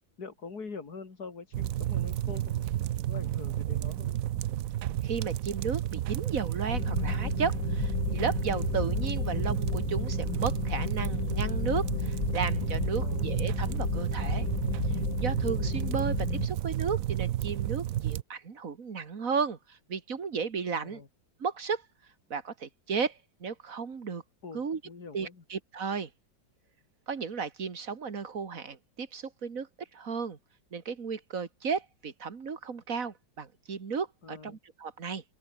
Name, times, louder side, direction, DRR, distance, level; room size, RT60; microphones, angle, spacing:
voice 1, 0.2-2.7 3.1-4.2 7.6-7.7 13.0-13.3 20.7-21.1 24.4-25.4 34.2-34.6, left 4 dB, 55° left, 3.4 m, -44 dB
sound 1, 1.5-18.2, right 13 dB, 65° right, 0.9 m, -31 dB
voice 2, 5.0-14.5 15.2-21.0 21.4-21.8 22.3-24.2 24.5-24.8 25.1-26.1 27.1-30.4 30.7-35.2, right 5 dB, 45° right, 2.2 m, -34 dB
sound 2, 6.7-16.5, left 14 dB, 90° left, 1.4 m, -33 dB
open air
omnidirectional pair, 2.0 m